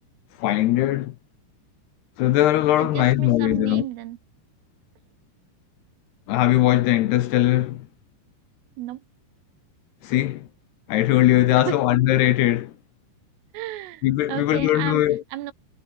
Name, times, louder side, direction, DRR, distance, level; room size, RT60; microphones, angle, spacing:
voice 1, 0.4-1.2 2.2-3.9 6.3-7.9 10.0-10.5 10.9-12.7 14.0-15.2, left 14 dB, 75° left, 2.5 m, -20 dB
voice 2, 2.8-4.2 8.8-9.0 11.7-11.8 13.5-14.0 14.3-15.0 15.3-15.5, right 15 dB, 80° right, 3.9 m, -32 dB
omnidirectional pair, 5.8 m